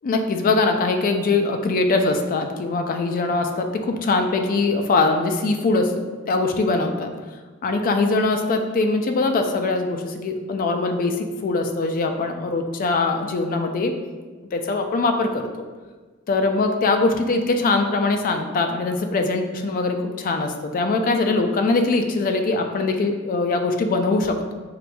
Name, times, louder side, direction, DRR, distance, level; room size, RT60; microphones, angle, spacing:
voice 1, 0.0-7.1 7.6-13.9 14.5-15.5 16.3-24.5, left 3 dB, 40° left, 6 dB, 0.3 m, -22 dB
5.0 x 2.5 x 2.2 m, 1.4 s
head